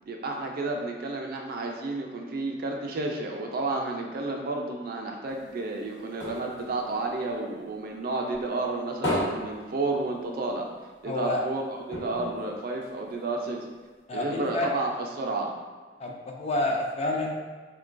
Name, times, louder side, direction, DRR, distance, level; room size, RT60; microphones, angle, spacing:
voice 1, 0.0-10.7 11.0-13.6 14.1-14.9 15.1-15.5, right 2 dB, 55° right, 1 dB, 0.4 m, -31 dB
sound 1, 5.3-7.9 8.3-10.6 10.9-11.0 11.3-11.4 11.9-13.4 14.0-14.1, left 1 dB, 75° left, 1.0 m, -35 dB
voice 2, 11.0-11.4 14.1-14.7 16.0-17.3, left 2 dB, 35° left, 0 dB, 0.4 m, -28 dB
3.7 x 2.2 x 2.5 m, 1.4 s
head